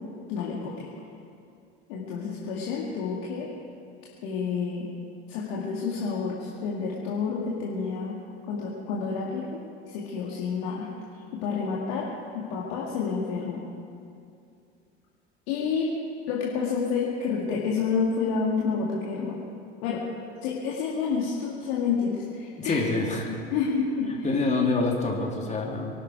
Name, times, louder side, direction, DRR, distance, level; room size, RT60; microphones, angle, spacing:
voice 1, 0.3-0.9 1.9-3.5 4.2-4.9 5.3-8.2 8.5-9.6 9.9-10.9 11.3-12.1 12.5-13.7 15.5-15.9 16.3-19.4 19.8-20.0 20.4-22.9 23.5-24.3 24.8-24.9, left 5 dB, 60° left, -3 dB, 2.3 m, -29 dB
voice 2, 22.6-23.3 24.2-25.9, left 3 dB, 20° left, -1 dB, 3.2 m, -26 dB
24.0 x 12.0 x 4.7 m, 2.5 s
figure-of-eight pair, 70°, 33 cm